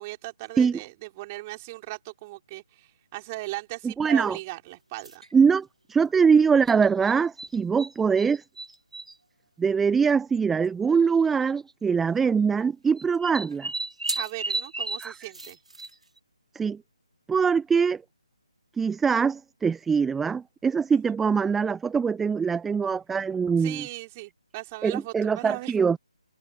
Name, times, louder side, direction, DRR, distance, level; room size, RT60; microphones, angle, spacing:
voice 1, 0.0-5.2 14.1-15.6 20.9-21.0 23.6-25.7, right 20 dB, 20° right, 5.0 m, -38 dB
voice 2, 3.8-4.4 5.3-8.4 9.6-13.7 15.0-15.1 16.5-16.8 17.3-18.0 18.8-23.9 24.8-26.0, right 6 dB, 5° right, 0.7 m, -23 dB
sound 1, 5.0-5.3 6.7-7.9 8.2-9.1 10.1-10.2 10.4-10.5 11.4-11.7 13.0-16.2, right 2 dB, 70° right, 1.0 m, -34 dB
figure-of-eight pair, 150°, 4 cm